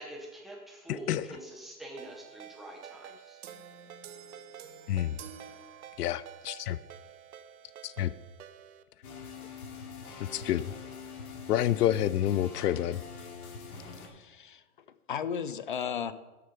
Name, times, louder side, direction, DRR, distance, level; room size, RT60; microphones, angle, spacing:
voice 1, 0.0-3.4, right 1 dB, ahead, -1 dB, 0.7 m, -45 dB
voice 2, 0.9-1.3 4.9-5.2 6.0-6.8 7.8-8.1 10.3-10.6 11.5-13.0, left 12 dB, 90° left, 17 dB, 0.6 m, -28 dB
Ringtone, 2.0-8.8, right 9 dB, 70° right, 1.0 m, -50 dB
sound 1, 3.4-6.4, right 7 dB, 55° right, 1.1 m, -50 dB
sound 2, 9.0-14.1, left 5 dB, 70° left, 2.8 m, -44 dB
voice 3, 13.9-16.1, left 7 dB, 35° left, 14 dB, 0.4 m, -36 dB
13.0 x 6.8 x 5.2 m, 1.1 s
hypercardioid pair, 160°, 45 cm